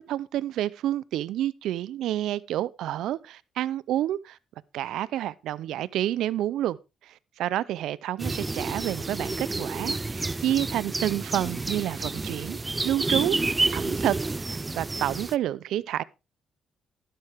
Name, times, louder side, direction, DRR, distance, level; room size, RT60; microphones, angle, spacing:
voice 1, 0.1-4.4 4.7-6.8 7.1-12.6 12.8-13.4 13.7-14.2 14.4-16.0, right 12 dB, 85° right, 0.5 m, -29 dB
sound 1, 8.2-15.3, right 3 dB, 20° right, 0.5 m, -30 dB
12.0 x 11.0 x 3.5 m
cardioid pair, 90°, 0 cm